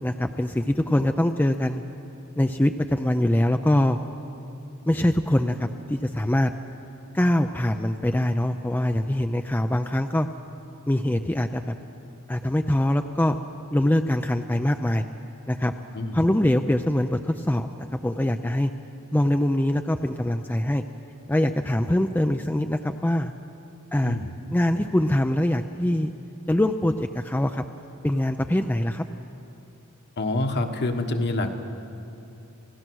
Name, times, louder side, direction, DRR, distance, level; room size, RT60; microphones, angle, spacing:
voice 1, 0.0-1.8 2.4-4.0 4.9-6.5 7.1-10.3 10.9-11.7 12.3-13.4 13.7-15.0 15.5-15.7 16.1-18.7 19.1-20.8 21.3-23.3 23.9-24.2 24.5-26.1 26.5-27.6 28.0-29.0, left 1 dB, 10° left, 6 dB, 0.4 m, -23 dB
voice 2, 15.9-16.3 24.0-24.3 30.2-31.5, left 2 dB, 50° left, 5 dB, 1.4 m, -26 dB
27.5 x 16.5 x 6.3 m, 2.8 s
head